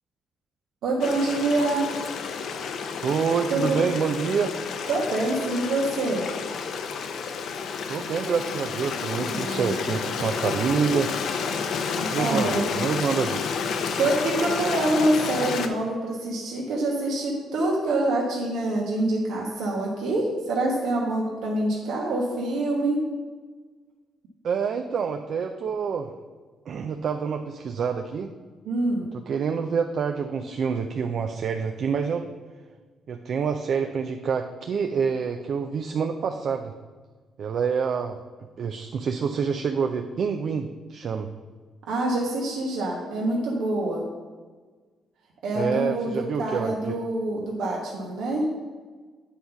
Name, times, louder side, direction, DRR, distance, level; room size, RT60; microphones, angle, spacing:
voice 1, 0.8-1.8 3.5-3.8 4.9-6.3 9.2-9.7 11.9-12.6 14.0-23.0 28.6-29.1 41.9-44.0 45.4-48.4, right 2 dB, 80° right, -2 dB, 1.2 m, -26 dB
Stream, 1.0-15.7, left 5 dB, 70° left, 0.6 m, -30 dB
voice 2, 3.0-4.6 7.9-11.1 12.1-13.4 24.4-26.1 26.7-28.3 29.1-32.3 33.1-36.7 37.4-38.2 38.6-41.3 45.5-47.0, right 6 dB, 60° right, 6 dB, 0.4 m, -27 dB
8.2 x 4.0 x 5.8 m, 1.4 s
cardioid pair, 90°, 0 cm